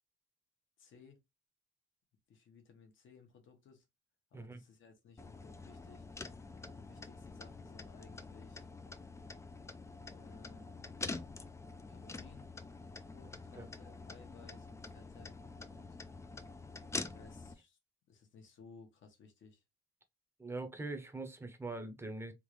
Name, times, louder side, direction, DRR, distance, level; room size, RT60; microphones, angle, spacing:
voice 1, 0.8-1.2 2.3-3.8 4.3-6.0 6.7-8.7 10.1-11.1 11.9-12.5 13.0-15.4 15.6-16.0 17.0-17.8 18.1-19.6, left 5 dB, 65° left, 1.2 m, -59 dB
sound 1, 5.2-17.5, left 3 dB, 15° left, 0.3 m, -46 dB
voice 2, 20.4-22.3, right 2 dB, 10° right, 0.7 m, -42 dB
3.6 x 2.5 x 3.1 m
cardioid pair, 130°, 21 cm